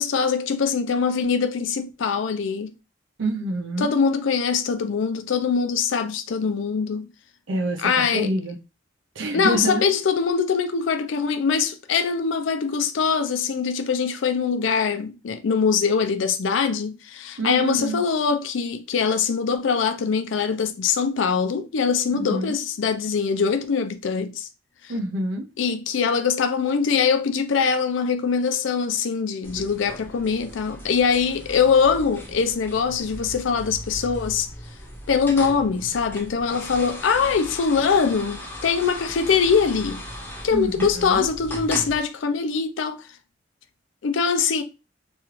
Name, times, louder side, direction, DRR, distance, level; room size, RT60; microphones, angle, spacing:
voice 1, 0.0-2.7 3.8-7.1 7.8-8.3 9.3-24.5 24.8-24.9 25.6-34.5 35.1-40.0 40.4-43.0 44.0-44.6, left 6 dB, 80° left, 0.4 m, -23 dB
voice 2, 3.2-3.9 7.5-8.6 9.2-9.8 17.4-18.0 22.1-22.6 24.9-25.5 40.5-41.3, right 1 dB, 75° right, 0.5 m, -27 dB
sound 1, 29.4-42.0, equal, 10° left, 0.6 m, -37 dB
3.1 x 2.4 x 3.0 m
head